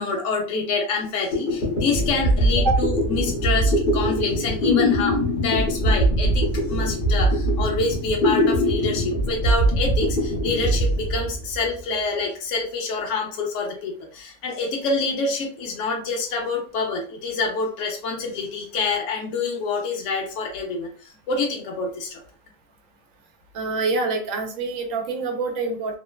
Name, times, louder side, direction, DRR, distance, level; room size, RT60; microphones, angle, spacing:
voice 1, 0.0-22.2, left 3 dB, 80° left, 0 dB, 1.0 m, -27 dB
sound 1, 1.0-1.1 1.3-11.8, equal, 45° left, 1.0 m, -22 dB
voice 2, 23.5-26.0, right 3 dB, 90° right, 4 dB, 1.1 m, -25 dB
3.0 x 2.1 x 2.2 m, 0.41 s
omnidirectional pair, 1.3 m